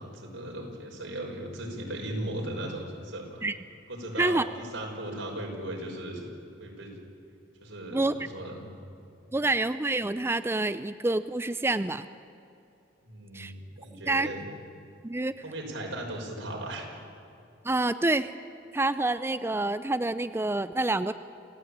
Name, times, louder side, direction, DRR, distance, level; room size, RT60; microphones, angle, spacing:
voice 1, 0.0-3.4 3.9-6.3 6.6-7.0 7.6-8.7 9.2-9.5 13.0-14.5 15.4-16.9, right 1 dB, 85° right, 0 dB, 5.7 m, -37 dB
voice 2, 9.3-12.0 13.3-13.5 14.1-14.3 15.0-15.3 17.6-18.3 18.7-21.1, right 2 dB, 15° right, 12 dB, 0.5 m, -27 dB
27.5 x 16.5 x 8.8 m, 2.7 s
head